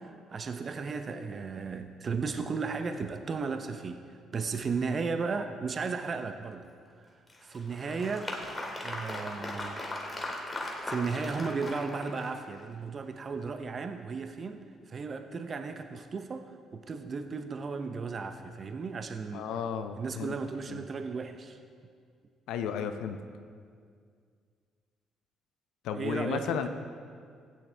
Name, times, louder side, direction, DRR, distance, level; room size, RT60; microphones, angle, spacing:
voice 1, 0.0-6.7 7.0-8.4 8.8-9.8 10.9-19.5 20.0-21.6 25.9-26.6, right 4 dB, 45° right, 8 dB, 0.7 m, -35 dB
Applause, 7.3-12.6, left 1 dB, 20° left, 2.2 m, -38 dB
voice 2, 19.3-20.4 20.7-20.8 22.5-23.2 25.8-26.7, left 7 dB, 70° left, 8 dB, 0.6 m, -33 dB
15.5 x 9.5 x 3.4 m, 2.2 s
hypercardioid pair, 50°, 0 cm